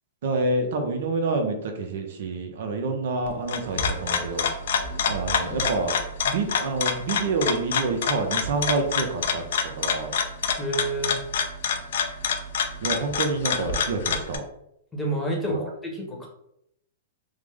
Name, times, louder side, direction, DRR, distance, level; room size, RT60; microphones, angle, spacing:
voice 1, 0.2-4.5 5.1-10.1 12.8-14.5 15.5-15.6, right 3 dB, 65° right, 4 dB, 0.6 m, -28 dB
sound 1, 3.3-14.4, left 6 dB, 70° left, 0.4 m, -27 dB
voice 2, 10.6-11.2 14.9-16.3, right 1 dB, 5° left, -2 dB, 0.9 m, -29 dB
3.3 x 2.0 x 3.4 m, 0.76 s
hypercardioid pair, 135°, 0 cm